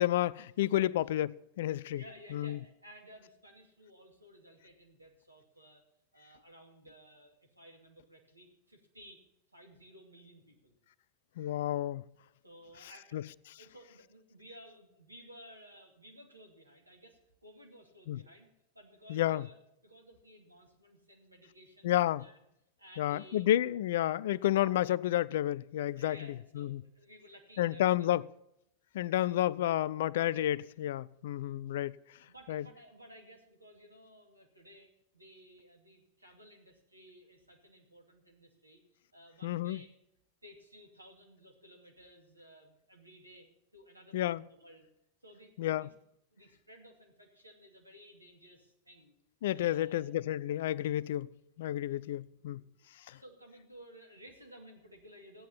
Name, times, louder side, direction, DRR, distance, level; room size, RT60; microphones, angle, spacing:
voice 1, 0.0-2.0 2.3-2.6 11.4-12.1 13.1-13.2 18.1-18.2 19.1-19.5 21.8-22.3 23.0-26.2 26.6-26.8 27.6-28.2 28.9-32.0 32.5-32.6 39.4-39.8 44.1-44.4 45.6-45.9 49.4-51.3 51.6-52.6 53.1-53.2, left 13 dB, 55° left, 0.4 m, -30 dB
voice 2, 1.9-5.8 6.1-9.2 9.5-10.7 12.4-13.2 13.6-19.6 19.8-22.4 22.8-23.5 25.9-28.1 29.3-29.4 31.4-31.6 32.2-39.9 40.4-44.9 45.2-45.9 46.3-49.1 49.5-50.2 51.7-52.0 52.5-52.6 53.1-55.5, equal, 85° right, 2.4 m, -56 dB
14.0 x 9.4 x 5.6 m
figure-of-eight pair, 90°, 0 cm